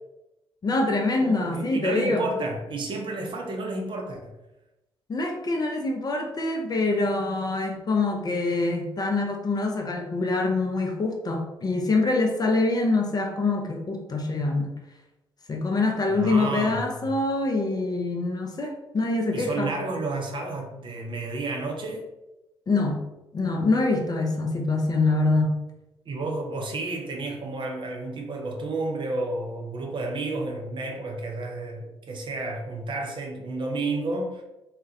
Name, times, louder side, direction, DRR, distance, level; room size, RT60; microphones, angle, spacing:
voice 1, 0.6-2.3 5.1-14.7 15.5-19.7 22.7-23.0 23.3-25.6, left 3 dB, 30° left, 2 dB, 0.5 m, -25 dB
voice 2, 1.2-4.3 16.1-17.2 19.3-22.1 26.1-34.4, right 2 dB, 40° right, 2 dB, 0.5 m, -31 dB
2.3 x 2.1 x 2.6 m, 0.95 s
figure-of-eight pair, 40°, 13 cm